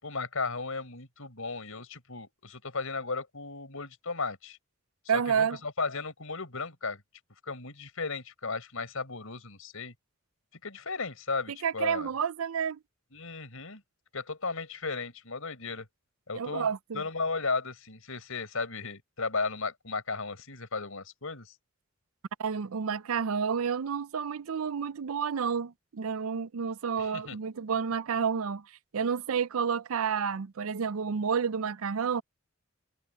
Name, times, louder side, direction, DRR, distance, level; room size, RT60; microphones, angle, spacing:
voice 1, 0.0-4.6 5.1-7.0 7.5-9.9 10.6-12.1 13.1-13.8 14.1-15.9 16.3-16.7 16.9-21.5 27.0-27.4, left 4 dB, 85° left, 4.9 m, -35 dB
voice 2, 5.1-5.6 11.6-12.8 16.3-17.0 22.4-28.7 28.9-32.2, right 6 dB, 90° right, 0.5 m, -30 dB
head